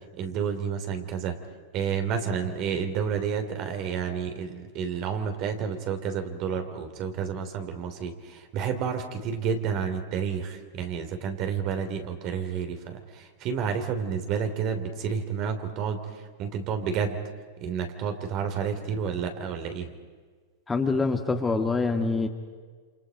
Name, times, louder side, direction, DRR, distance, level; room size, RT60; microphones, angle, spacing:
voice 1, 0.2-1.4 1.7-17.2 17.6-19.9, right 7 dB, 45° right, 6 dB, 3.2 m, -30 dB
voice 2, 20.7-22.3, left 3 dB, 15° left, 5 dB, 1.9 m, -25 dB
28.0 x 26.5 x 5.3 m, 1.5 s
hypercardioid pair, 115°, 0 cm